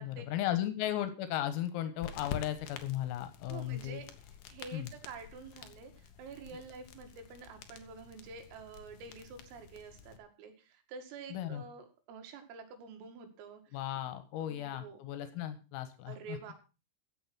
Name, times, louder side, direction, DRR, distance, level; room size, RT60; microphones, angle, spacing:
voice 1, 0.0-4.0 4.7-4.9 11.3-11.6 13.7-16.4, left 12 dB, 85° left, 10 dB, 4.1 m, -36 dB
sound 1, 2.0-10.2, left 8 dB, 70° left, 2.6 m, -48 dB
voice 2, 3.5-4.1 4.5-13.6 14.4-15.0 16.1-16.5, right 5 dB, 80° right, 5 dB, 4.8 m, -48 dB
15.5 x 7.4 x 6.2 m, 0.33 s
omnidirectional pair, 5.9 m